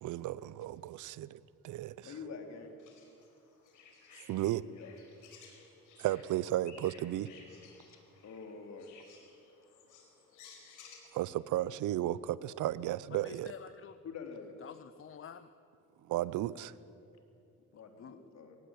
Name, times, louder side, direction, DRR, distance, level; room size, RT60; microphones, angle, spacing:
voice 1, 0.0-2.1 4.3-4.7 6.0-7.3 11.1-13.5 16.1-16.7, right 14 dB, 80° right, 19 dB, 0.7 m, -34 dB
voice 2, 2.0-2.7 4.7-4.9 7.9-8.9 14.0-14.5 17.7-18.6, left 5 dB, 60° left, 4 dB, 3.4 m, -46 dB
sound 1, 2.8-11.0, left 5 dB, 90° left, 4.7 m, -57 dB
voice 3, 13.1-14.0 14.6-15.5 17.7-18.2, left 8 dB, 45° left, 12 dB, 0.8 m, -49 dB
22.5 x 18.0 x 8.9 m, 2.6 s
cardioid pair, 90°, 30 cm